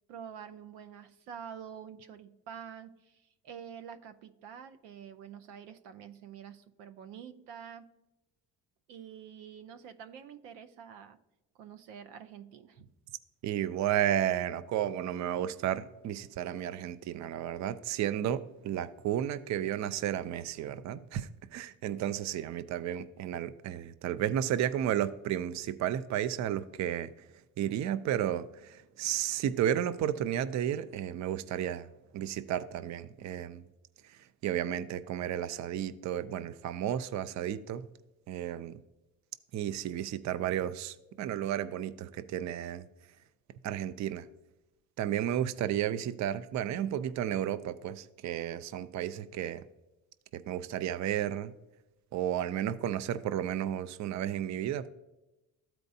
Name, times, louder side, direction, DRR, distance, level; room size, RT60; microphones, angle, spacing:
voice 1, 0.1-7.9 8.9-11.2 11.6-12.9, right 8 dB, 85° right, 0.7 m, -47 dB
voice 2, 13.4-27.1 27.6-31.9 32.1-33.6 34.0-37.9 38.3-38.8 39.5-42.9 43.6-44.3 45.0-49.6 50.3-51.5 52.1-54.9, right 11 dB, 45° right, 0.5 m, -33 dB
13.0 x 4.5 x 2.6 m
supercardioid pair, 75°, 41 cm